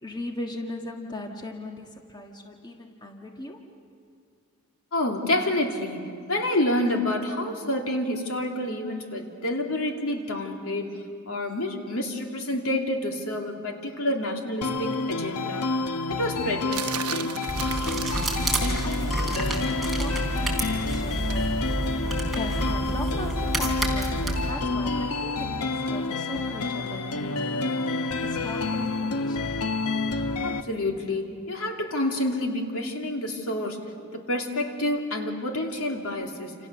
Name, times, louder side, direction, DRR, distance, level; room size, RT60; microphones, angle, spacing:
voice 1, 0.0-3.7 18.8-22.0 22.3-29.6, left 1 dB, 20° left, 2 dB, 1.5 m, -39 dB
voice 2, 4.9-11.0 11.3-15.7 16.1-17.4 30.4-33.8 34.1-36.5, left 1 dB, 70° left, 2 dB, 2.8 m, -28 dB
sound 1, 14.6-30.6, left 3 dB, 85° left, 1.0 m, -29 dB
sound 2, 16.7-18.8 21.3-21.5, right 9 dB, 75° right, 0.9 m, -35 dB
sound 3, 17.5-24.5, right 1 dB, ahead, 4.0 m, -28 dB
28.5 x 28.0 x 6.9 m, 2.3 s
head